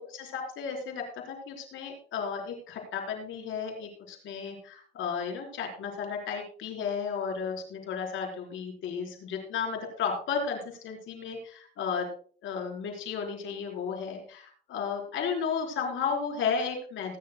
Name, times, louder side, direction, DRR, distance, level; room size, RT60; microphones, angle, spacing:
voice 1, 0.0-12.1 12.4-17.2, left 6 dB, 80° left, 2 dB, 4.2 m, -33 dB
20.0 x 10.0 x 2.2 m, 0.43 s
cardioid pair, 90°, 20 cm